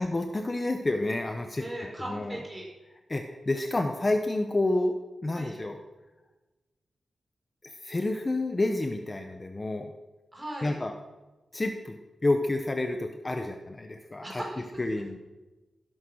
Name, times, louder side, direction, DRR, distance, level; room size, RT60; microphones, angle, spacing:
voice 1, 0.0-1.6 2.0-2.4 3.1-5.0 5.2-5.8 7.6-9.9 10.6-10.9 11.5-14.4 14.8-15.2, left 2 dB, 25° left, 5 dB, 1.0 m, -29 dB
voice 2, 1.6-2.6 5.3-5.6 10.3-10.8 14.2-14.7, right 1 dB, 15° right, -2 dB, 5.9 m, -38 dB
17.5 x 11.5 x 6.4 m, 1.1 s
wide cardioid pair, 125°, 0 cm